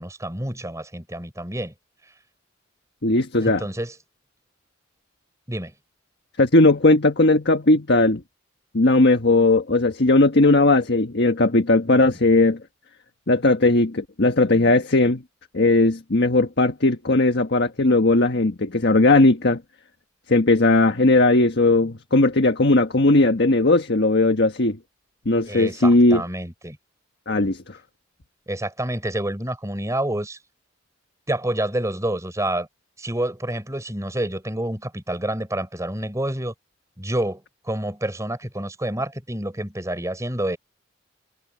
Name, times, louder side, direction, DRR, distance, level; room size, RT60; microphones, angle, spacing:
voice 1, 0.0-1.7 3.4-3.9 5.5-5.7 25.5-26.8 28.5-30.4 31.3-32.7 33.0-36.5 37.0-40.6, right 1 dB, 15° right, 4.8 m, -28 dB
voice 2, 3.0-3.6 6.4-8.2 8.7-12.6 13.3-15.2 15.5-19.6 20.3-24.8 25.2-26.2 27.3-27.6, left 2 dB, 60° left, 1.5 m, -18 dB
head